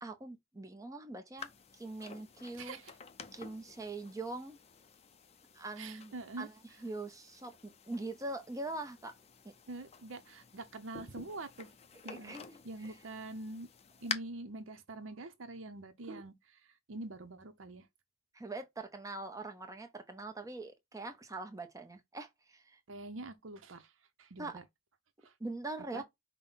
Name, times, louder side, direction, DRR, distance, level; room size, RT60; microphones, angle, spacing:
voice 1, 0.0-2.8 3.3-4.6 5.5-6.5 6.8-9.1 9.4-9.5 12.0-12.9 18.3-22.8 24.4-24.6 25.4-26.0, right 2 dB, 15° right, 0.7 m, -43 dB
sound 1, 1.4-14.1, left 6 dB, 30° left, 0.5 m, -49 dB
voice 2, 2.6-2.9 5.8-6.5 9.7-11.7 12.0-12.3 12.6-13.7 14.0-16.6 16.9-17.9 22.9-23.9 24.2-24.6 25.2-25.3 25.9-26.0, right 2 dB, 70° right, 0.7 m, -45 dB
5.5 x 2.2 x 3.9 m
head